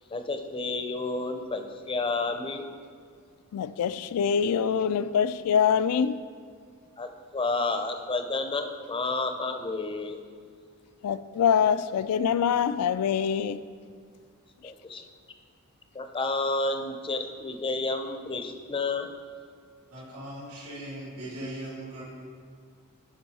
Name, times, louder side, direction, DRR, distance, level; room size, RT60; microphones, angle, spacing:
voice 1, 0.1-2.7 7.0-10.2 14.6-15.0 15.9-19.1, left 3 dB, 25° left, 0.5 m, -30 dB
voice 2, 3.5-6.2 11.0-13.6, left 7 dB, 85° left, 0.3 m, -24 dB
voice 3, 19.9-22.0, right 1 dB, 80° right, 2.3 m, -39 dB
10.0 x 5.3 x 4.1 m
head